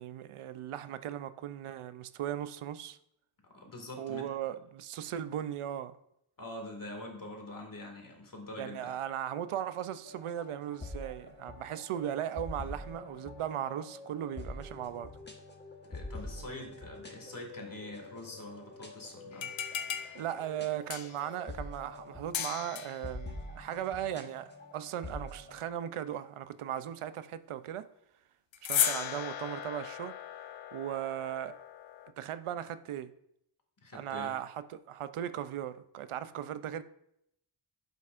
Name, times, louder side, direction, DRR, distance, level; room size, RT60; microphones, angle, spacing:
voice 1, 0.0-3.0 4.0-6.0 8.6-15.1 20.1-27.9 28.6-30.2 30.7-31.6 32.2-33.1 33.9-36.8, right 10 dB, 90° right, 0.6 m, -37 dB
voice 2, 3.4-4.3 6.4-8.9 15.8-19.5 33.8-34.4, left 1 dB, 40° left, 2.1 m, -44 dB
sound 1, 10.0-25.7, left 2 dB, 20° left, 1.2 m, -46 dB
sound 2, 19.3-21.3 22.3-23.1 28.5-32.1, left 9 dB, 65° left, 0.8 m, -36 dB
11.0 x 7.8 x 2.5 m
wide cardioid pair, 105°, 49 cm